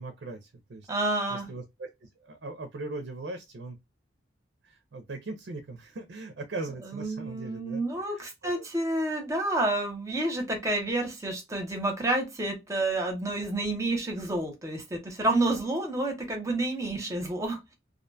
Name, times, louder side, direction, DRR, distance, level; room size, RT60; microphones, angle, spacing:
voice 1, 0.0-0.9 1.3-3.8 4.6-8.7, right 2 dB, 65° right, 0.4 m, -40 dB
voice 2, 0.9-1.5 6.9-17.7, right 2 dB, 15° right, 0.7 m, -29 dB
2.5 x 2.1 x 2.5 m
head